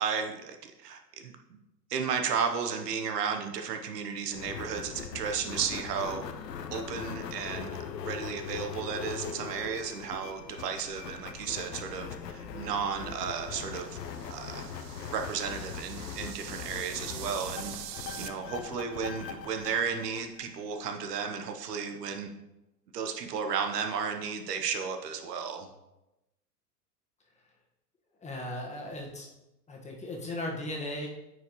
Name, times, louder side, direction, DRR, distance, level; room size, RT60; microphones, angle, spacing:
voice 1, 0.0-1.3 1.9-6.2 6.7-7.8 8.0-14.0 14.3-14.6 15.1-17.7 18.2-22.3 22.9-25.7, right 6 dB, 70° right, 5 dB, 1.0 m, -33 dB
sound 1, 4.3-20.8, left 7 dB, 80° left, 0.8 m, -41 dB
sound 2, 13.2-18.3, right 12 dB, 45° right, 0.6 m, -45 dB
voice 2, 28.2-29.3 29.7-31.1, left 1 dB, 15° left, -1 dB, 1.5 m, -37 dB
9.2 x 4.8 x 3.1 m, 0.94 s
hypercardioid pair, 105°, 49 cm